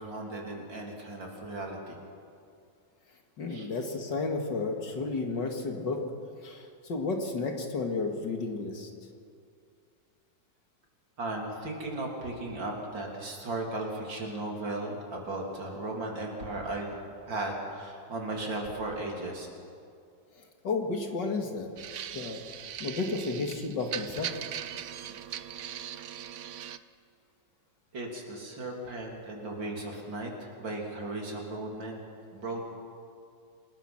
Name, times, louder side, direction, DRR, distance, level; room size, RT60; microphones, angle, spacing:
voice 1, 0.0-2.0 3.5-3.7 11.2-19.5 27.9-32.0 32.3-32.6, right 2 dB, 90° right, 0 dB, 4.0 m, -36 dB
voice 2, 3.4-6.0 6.4-8.9 20.6-21.7 22.1-22.4 22.8-24.3, left 3 dB, 70° left, 3 dB, 2.7 m, -32 dB
sound 1, 21.8-26.8, right 10 dB, 60° right, 0.8 m, -40 dB
27.5 x 19.5 x 6.0 m, 2.4 s
omnidirectional pair, 2.0 m